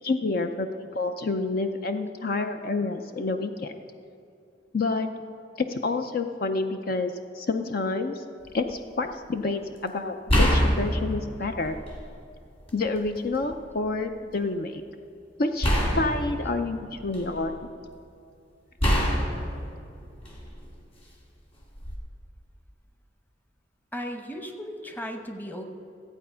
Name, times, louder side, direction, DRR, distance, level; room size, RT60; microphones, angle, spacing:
voice 1, 0.0-3.7 4.7-5.1 5.6-8.2 8.5-11.8 12.7-14.8 15.4-15.7 15.9-17.6, left 3 dB, 50° left, 7 dB, 0.5 m, -28 dB
sound 1, 8.4-8.7 10.3-12.1 12.6-13.5 15.6-17.6 18.8-20.7 21.7-22.0, equal, 30° left, 2.0 m, -26 dB
voice 2, 23.9-25.6, equal, 10° left, 5 dB, 0.9 m, -36 dB
14.5 x 8.5 x 5.6 m, 2.5 s
head